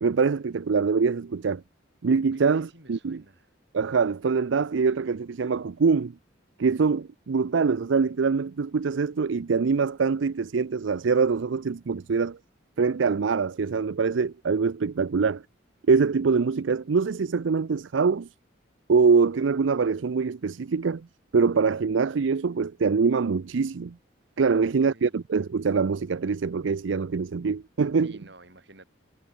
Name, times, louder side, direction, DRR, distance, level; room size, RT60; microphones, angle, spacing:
voice 1, 0.0-1.6 2.0-3.2 3.7-6.1 6.6-12.4 12.8-15.4 15.9-18.3 18.9-21.1 21.3-23.9 24.4-28.1, right 5 dB, 80° right, 0.5 m, -24 dB
voice 2, 2.3-3.5 24.5-25.2 28.0-28.8, right 2 dB, 60° right, 6.2 m, -51 dB
head